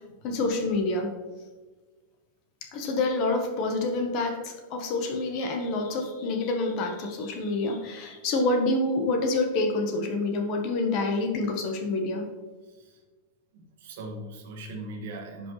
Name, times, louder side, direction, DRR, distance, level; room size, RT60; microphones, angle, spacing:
voice 1, 0.2-1.1 2.6-12.3, left 2 dB, 35° left, 4 dB, 1.0 m, -27 dB
voice 2, 12.6-13.0 13.5-15.5, right 2 dB, 60° right, 2 dB, 1.5 m, -40 dB
10.5 x 5.2 x 3.1 m, 1.3 s
supercardioid pair, 175°, 0 cm